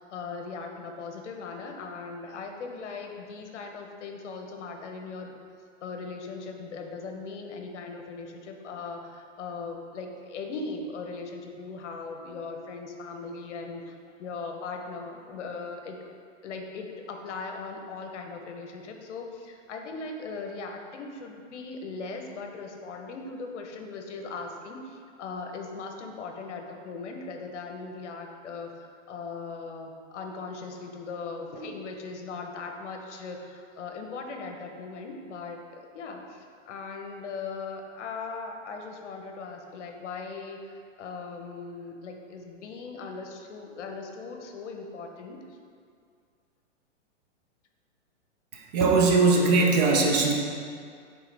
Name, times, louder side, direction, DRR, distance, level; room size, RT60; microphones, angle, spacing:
voice 1, 0.0-5.3 5.8-16.0 16.4-45.4, left 4 dB, 65° left, 3 dB, 0.9 m, -39 dB
voice 2, 48.5-50.3, right 3 dB, 35° right, 0 dB, 0.8 m, -21 dB
9.1 x 3.8 x 3.4 m, 2.2 s
hypercardioid pair, 145°, 37 cm